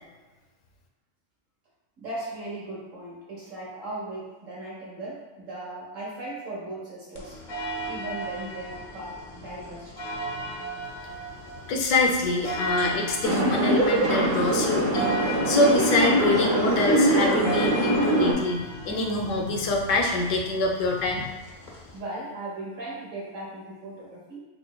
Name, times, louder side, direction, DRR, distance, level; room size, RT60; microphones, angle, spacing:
voice 1, 2.0-7.4 7.9-10.0 21.9-24.4, right 2 dB, 80° right, -7 dB, 1.7 m, -37 dB
sound 1, 7.1-22.0, right 1 dB, 50° left, 0.6 m, -36 dB
voice 2, 11.7-21.2, left 2 dB, 75° left, 1 dB, 1.0 m, -25 dB
sound 2, 13.2-18.3, right 1 dB, 50° right, 0.6 m, -23 dB
5.3 x 2.1 x 2.3 m, 1.2 s
omnidirectional pair, 1.3 m